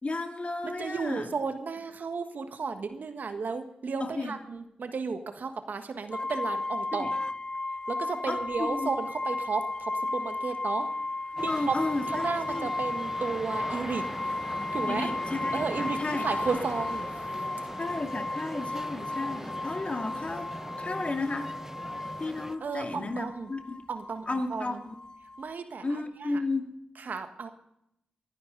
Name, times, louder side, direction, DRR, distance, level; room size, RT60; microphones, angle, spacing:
voice 1, 0.0-1.3 4.0-4.4 7.0-7.1 8.3-8.9 11.3-12.7 14.9-16.3 17.8-21.5 22.2-23.8 24.3-25.0 25.8-26.8, left 2 dB, 40° left, 4 dB, 2.3 m, -33 dB
voice 2, 0.6-7.1 7.9-10.9 11.4-11.7 12.1-14.0 14.7-15.1 15.5-17.1 22.6-23.5 23.9-24.8 25.4-26.4 27.0-27.5, right 4 dB, 65° right, 7 dB, 1.6 m, -33 dB
sound 1, 6.1-25.5, left 2 dB, 25° left, 0.4 m, -34 dB
sound 2, 8.4-21.4, left 3 dB, 65° left, 2.8 m, -50 dB
sound 3, 11.4-22.6, right 1 dB, 15° right, 0.9 m, -41 dB
20.5 x 11.0 x 4.0 m, 0.78 s
supercardioid pair, 40°, 3 cm